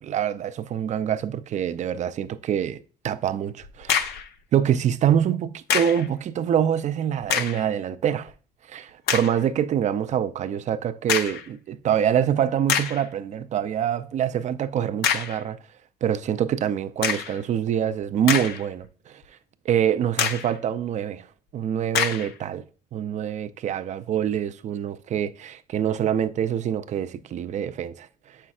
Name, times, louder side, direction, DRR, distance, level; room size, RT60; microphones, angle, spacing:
voice 1, 0.0-4.2 4.5-8.3 8.7-15.6 16.0-19.2 19.6-21.3 21.5-22.7 22.9-28.4, right 9 dB, 45° right, 0.5 m, -25 dB
sound 1, 3.6-4.3 5.7-6.1 7.2-7.7 8.3-8.4 9.1-9.4 11.1-11.5 12.2-12.3 12.7-13.1 15.0-15.4 17.0-17.4 18.0-18.8 19.2-19.3 20.2-20.6 21.9-22.3, left 8 dB, 70° left, 0.6 m, -26 dB
7.4 x 5.6 x 2.4 m
cardioid pair, 110°, 17 cm